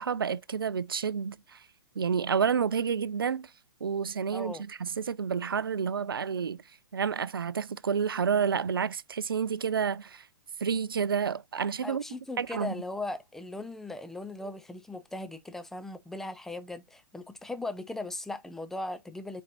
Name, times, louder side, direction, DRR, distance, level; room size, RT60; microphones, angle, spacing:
voice 1, 0.0-1.6 2.0-3.5 3.8-6.6 6.9-10.2 10.6-12.0 12.4-12.8, right 6 dB, 85° right, 0.4 m, -29 dB
voice 2, 4.3-4.6 11.8-19.4, left 2 dB, 5° left, 0.5 m, -38 dB
4.7 x 4.1 x 2.5 m
figure-of-eight pair, 115°, 12 cm